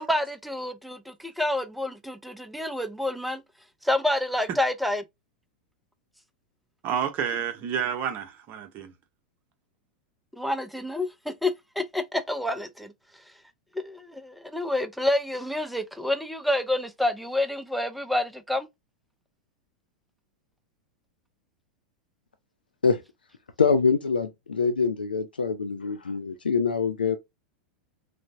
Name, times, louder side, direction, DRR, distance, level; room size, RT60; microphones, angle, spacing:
voice 1, 0.0-3.4 3.8-5.0 10.4-12.9 13.7-18.7, left 1 dB, ahead, 0.4 m, -28 dB
voice 2, 6.8-8.9, right 8 dB, 40° right, 0.7 m, -29 dB
voice 3, 23.6-27.2, left 5 dB, 90° left, 0.4 m, -24 dB
3.2 x 2.0 x 2.5 m
hypercardioid pair, 95°, 5 cm